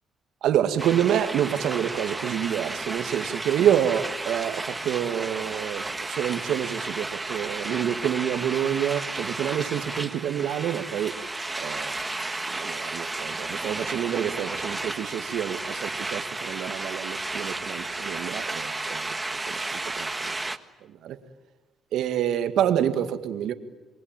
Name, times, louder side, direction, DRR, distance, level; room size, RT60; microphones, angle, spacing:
voice 1, 0.4-11.2 11.6-12.1 12.5-19.2 19.5-20.4 20.8-21.2 21.9-23.5, right 10 dB, 80° right, 8 dB, 2.0 m, -27 dB
sound 1, 0.8-20.6, right 2 dB, 15° right, 1.5 m, -33 dB
27.5 x 23.0 x 9.1 m, 1.2 s
cardioid pair, 90°, 0 cm